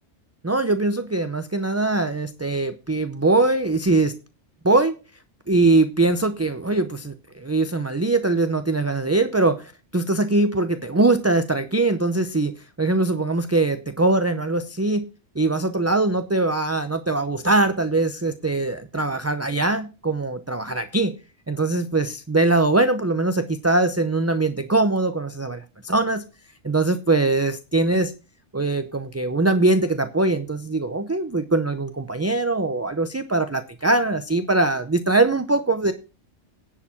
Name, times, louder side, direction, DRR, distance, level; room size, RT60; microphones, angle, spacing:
voice 1, 0.4-4.1 4.6-4.9 5.5-12.5 12.8-15.1 15.4-21.1 21.5-26.2 26.6-28.1 28.5-35.9, right 2 dB, 20° right, 9 dB, 0.5 m, -22 dB
10.5 x 4.9 x 7.2 m, 0.32 s
omnidirectional pair, 1.2 m